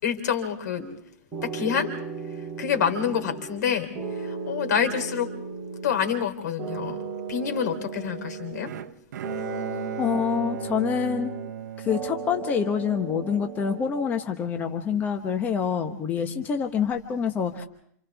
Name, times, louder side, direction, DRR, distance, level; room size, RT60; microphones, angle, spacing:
voice 1, 0.0-0.9 1.4-1.9 2.6-5.4 5.8-7.0 7.3-8.7, left 8 dB, 75° left, 7 dB, 3.6 m, -27 dB
sound 1, 0.8-1.0 1.3-3.7 3.9-6.3 6.6-8.9 9.2-11.6 11.9-14.2, right 4 dB, 15° right, 5.8 m, -36 dB
Bowed string instrument, 8.7-12.9, right 9 dB, 75° right, 0.8 m, -36 dB
voice 2, 10.0-11.3 11.8-17.7, left 7 dB, 20° left, 5 dB, 1.1 m, -26 dB
28.5 x 28.0 x 3.5 m, 0.65 s
supercardioid pair, 155°, 9 cm